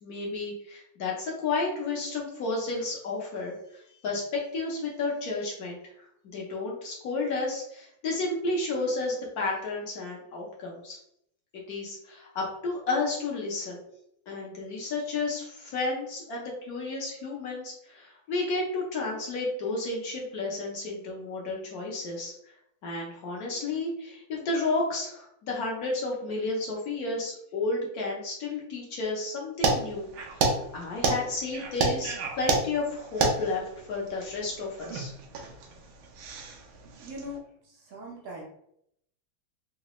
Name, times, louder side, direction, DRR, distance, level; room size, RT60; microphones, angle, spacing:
voice 1, 0.0-5.8 6.3-11.0 11.7-13.8 14.3-22.3 22.8-30.1 30.3-30.4 30.7-33.6 33.9-35.1, left 3 dB, 60° left, -2 dB, 1.0 m, -32 dB
sound 1, 29.6-37.3, right 3 dB, 80° right, 1.4 m, -30 dB
voice 2, 37.0-38.4, left 1 dB, 65° right, -2 dB, 0.7 m, -41 dB
3.9 x 2.2 x 3.0 m, 0.73 s
omnidirectional pair, 2.3 m